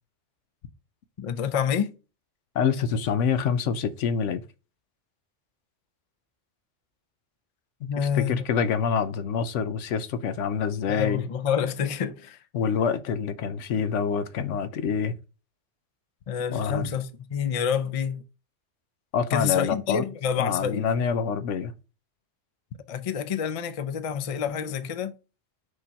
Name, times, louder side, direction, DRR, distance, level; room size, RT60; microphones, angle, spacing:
voice 1, 1.2-1.9 7.9-8.4 10.9-12.4 16.3-18.2 19.3-20.9 22.9-25.1, left 7 dB, 45° left, 0.5 m, -28 dB
voice 2, 2.5-4.4 7.8-11.2 12.5-15.1 16.5-16.9 19.1-20.0 20.4-21.7, left 6 dB, 75° left, 1.0 m, -26 dB
6.3 x 3.0 x 5.6 m
omnidirectional pair, 1.3 m